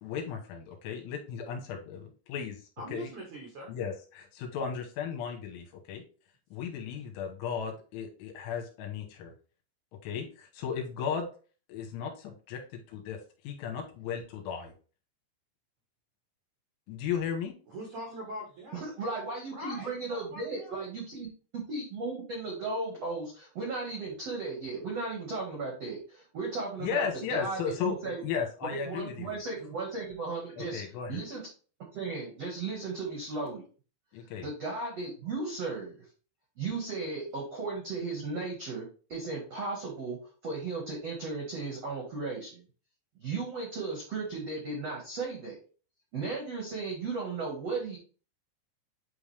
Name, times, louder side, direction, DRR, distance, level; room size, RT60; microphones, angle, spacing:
voice 1, 0.0-2.6 2.9-3.1 3.7-6.0 6.5-9.3 10.0-11.3 11.7-13.2 13.4-14.7 16.9-17.5 26.8-29.4 30.6-31.2 34.1-34.5, left 7 dB, 75° left, 2 dB, 3.5 m, -35 dB
voice 2, 2.8-3.7 17.7-18.8 19.5-20.8, equal, 70° right, -2 dB, 1.9 m, -42 dB
voice 3, 18.7-28.2 28.8-30.8 31.1-31.4 31.9-33.6 34.4-35.9 36.6-38.8 39.1-40.2 40.4-42.6 43.1-45.6 46.1-48.0, right 3 dB, 85° right, -2 dB, 1.4 m, -35 dB
8.8 x 3.5 x 3.3 m, 0.37 s
omnidirectional pair, 5.8 m